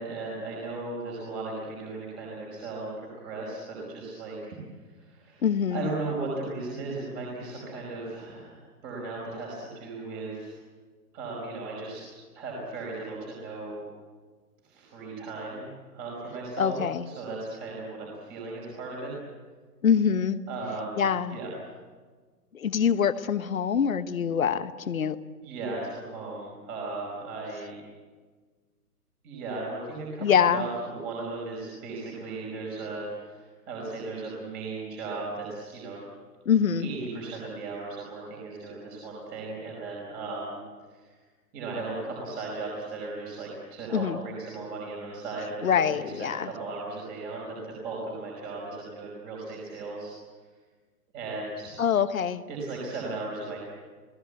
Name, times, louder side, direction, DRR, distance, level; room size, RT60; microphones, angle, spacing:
voice 1, 0.0-5.4 5.7-10.6 11.1-13.8 14.6-15.7 15.9-16.8 17.0-19.1 20.5-21.0 21.3-21.5 25.4-27.8 29.2-30.3 30.5-36.0 36.8-40.6 40.9-41.0 41.5-50.1 51.1-51.8 52.5-53.6, right 3 dB, 20° right, -3 dB, 5.1 m, -36 dB
voice 2, 5.4-5.9 16.6-17.1 19.8-20.4 21.0-21.4 22.5-25.2 30.2-30.7 36.4-36.9 43.9-44.2 45.6-46.5 51.8-52.4, left 7 dB, 60° left, 12 dB, 1.3 m, -24 dB
29.5 x 18.0 x 8.3 m, 1.5 s
figure-of-eight pair, 145°, 47 cm